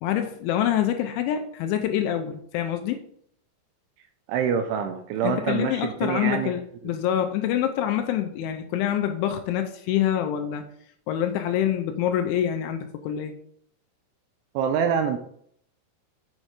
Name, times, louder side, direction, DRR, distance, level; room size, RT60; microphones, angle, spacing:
voice 1, 0.0-3.0 5.2-10.6 11.1-13.3, left 10 dB, 80° left, 6 dB, 2.9 m, -26 dB
voice 2, 4.3-6.5 14.5-15.2, right 7 dB, 85° right, 6 dB, 2.9 m, -25 dB
7.6 x 6.3 x 5.0 m, 0.65 s
omnidirectional pair, 5.8 m